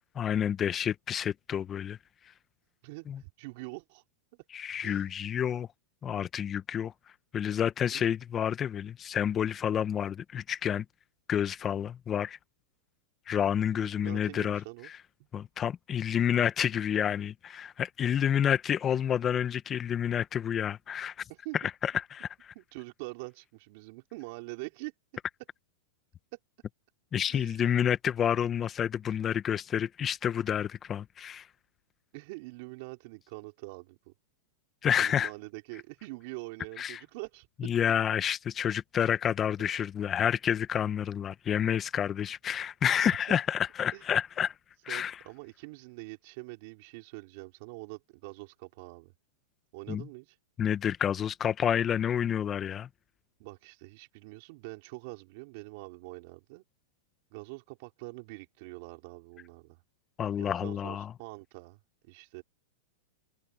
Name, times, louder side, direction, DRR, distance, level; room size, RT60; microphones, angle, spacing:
voice 1, 0.2-2.0 3.1-3.2 4.5-5.7 6.0-6.9 7.3-10.8 11.3-12.4 13.3-14.6 15.3-21.1 21.8-22.3 27.1-31.5 34.8-35.3 36.8-37.0 37.6-44.5 44.8-45.2 49.9-50.1 50.6-52.9 60.2-61.1, left 9 dB, 25° left, 0.9 m, -29 dB
voice 2, 2.8-4.0 4.3-4.4 4.8-5.3 7.9-8.1 13.7-14.9 15.2-15.3 21.3-21.6 22.5-24.9 27.3-27.8 32.1-34.1 35.0-37.5 39.7-39.8 43.0-43.4 43.9-44.0 44.9-49.1 49.7-50.4 53.4-56.6 57.3-59.8 60.4-62.4, right 26 dB, 50° right, 4.1 m, -44 dB
hypercardioid pair, 140°, 0 cm